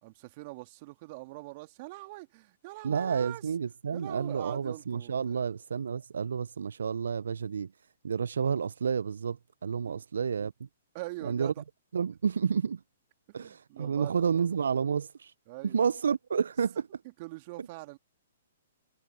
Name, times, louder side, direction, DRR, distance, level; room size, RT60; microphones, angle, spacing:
voice 1, 0.0-3.4 3.9-5.5 9.8-10.0 10.9-11.6 13.3-14.5 15.5-15.8 17.2-18.0, right 22 dB, 40° right, 2.6 m, -43 dB
voice 2, 2.8-7.7 8.0-10.7 11.2-11.5 11.9-12.8 13.3-15.3 15.6-16.8 17.6-17.7, right 6 dB, 70° right, 0.6 m, -30 dB
figure-of-eight pair, 120°, 0 cm